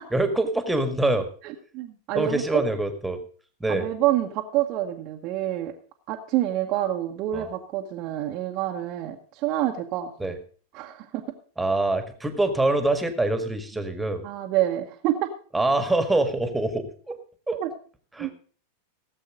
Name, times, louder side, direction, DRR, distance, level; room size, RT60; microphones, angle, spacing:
voice 1, 0.1-1.3 2.2-3.2 3.6-3.9 7.3-7.5 10.2-10.4 11.6-14.2 15.5-17.2 17.5-17.6 18.2-18.3, right 2 dB, 5° right, 8 dB, 1.8 m, -25 dB
voice 2, 1.4-2.6 3.7-5.7 6.1-10.1 10.7-11.2 14.2-15.3 17.6-17.7 18.2-18.3, right 13 dB, 40° right, 0 dB, 1.1 m, -27 dB
17.0 x 7.6 x 5.2 m, 0.43 s
figure-of-eight pair, 90°, 0 cm